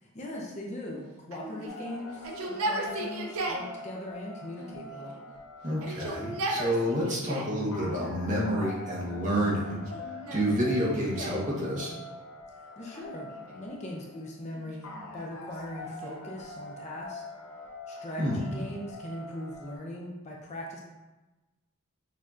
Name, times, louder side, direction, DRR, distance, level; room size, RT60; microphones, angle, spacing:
voice 1, 0.0-5.2 12.5-17.2 17.9-20.8, left 1 dB, 30° left, -2 dB, 0.5 m, -40 dB
Yell, 1.3-3.7 4.6-5.3 5.7-7.6 8.3-9.0 9.7-11.5 12.9-13.7 14.6-16.3, right 2 dB, 75° right, 0.5 m, -37 dB
sound 1, 1.7-19.8, left 2 dB, 80° left, 0.8 m, -45 dB
voice 2, 5.6-9.7 10.3-11.9 18.2-18.4, equal, 35° right, -5 dB, 1.1 m, -28 dB
6.3 x 2.7 x 2.4 m, 1.1 s
head